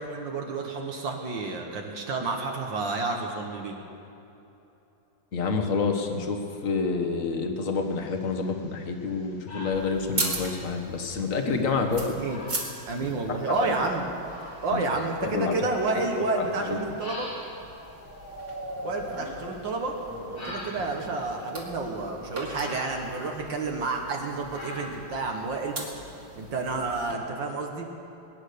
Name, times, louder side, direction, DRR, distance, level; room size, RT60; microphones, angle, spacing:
voice 1, 0.0-3.8 12.1-12.4 12.9-14.1 14.6-17.3 18.8-19.9 20.4-25.7 26.4-27.9, right 3 dB, 65° right, 2 dB, 2.0 m, -30 dB
voice 2, 5.3-12.2 13.0-13.7 14.7-14.8 15.2-15.6 16.3-16.8, left 4 dB, 45° left, 4 dB, 1.5 m, -28 dB
sound 1, 7.7-26.4, left 1 dB, 80° left, 3.9 m, -46 dB
sound 2, 9.7-27.1, right 2 dB, 45° right, 2.8 m, -40 dB
sound 3, 15.6-21.3, equal, 10° left, 0.9 m, -43 dB
21.5 x 9.8 x 6.7 m, 3.0 s
omnidirectional pair, 2.2 m